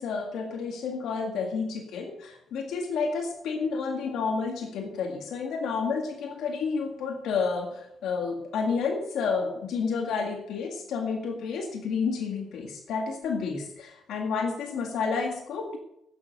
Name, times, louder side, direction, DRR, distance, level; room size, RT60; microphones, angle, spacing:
voice 1, 0.0-15.8, left 5 dB, 75° left, 4 dB, 1.9 m, -30 dB
11.5 x 9.2 x 6.6 m, 0.81 s
cardioid pair, 90°, 0 cm